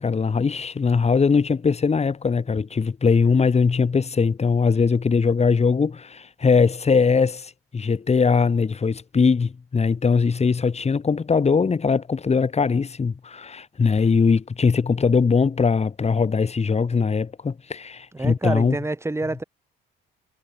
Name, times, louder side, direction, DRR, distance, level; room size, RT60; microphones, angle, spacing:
voice 1, 0.0-18.8, left 5 dB, 30° left, 2.5 m, -21 dB
voice 2, 18.1-19.4, right 2 dB, 15° right, 2.5 m, -27 dB
cardioid pair, 90°, 20 cm